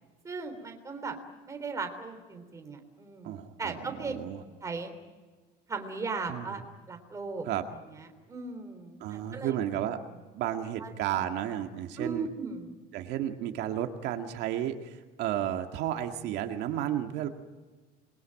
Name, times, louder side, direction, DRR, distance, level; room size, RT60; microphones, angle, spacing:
voice 1, 0.2-1.2 1.5-4.1 4.6-4.9 5.7-6.6 6.9-7.5 7.9-9.5 10.8-10.9 12.0-12.7, right 4 dB, 15° right, 5 dB, 3.5 m, -37 dB
voice 2, 3.2-4.4 6.3-6.5 7.5-7.6 9.0-10.0 10.3-12.3 12.9-17.3, right 11 dB, 65° right, 5 dB, 2.1 m, -32 dB
28.0 x 22.5 x 9.0 m, 1.3 s
cardioid pair, 175°, 19 cm